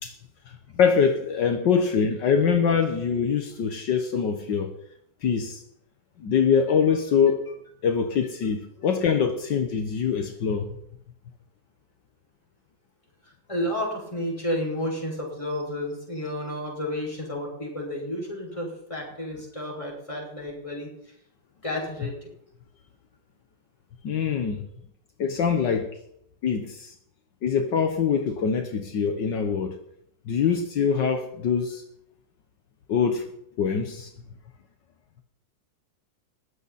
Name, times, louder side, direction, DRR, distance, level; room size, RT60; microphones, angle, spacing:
voice 1, 0.5-4.7 5.2-5.6 6.2-7.4 7.8-10.7 24.0-24.7 25.2-26.0 26.4-26.9 27.4-29.8 30.3-31.8 32.9-33.3 33.6-34.1, left 6 dB, 75° left, 1.9 m, -24 dB
voice 2, 13.2-20.9 21.6-22.3, left 1 dB, 15° left, 5.9 m, -31 dB
20.5 x 15.5 x 4.2 m
omnidirectional pair, 2.0 m